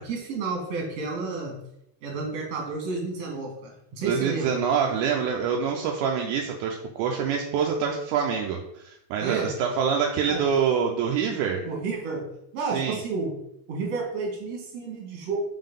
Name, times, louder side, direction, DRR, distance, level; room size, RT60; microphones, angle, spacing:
voice 1, 0.0-1.5 2.0-4.6 9.2-9.5 10.3-10.4 11.6-12.2 12.5-13.3 13.7-15.4, right 4 dB, 55° right, -1 dB, 2.4 m, -31 dB
voice 2, 4.0-11.7 12.7-13.0, right 7 dB, 80° right, 1 dB, 1.9 m, -26 dB
5.5 x 3.8 x 5.2 m, 0.79 s
omnidirectional pair, 4.0 m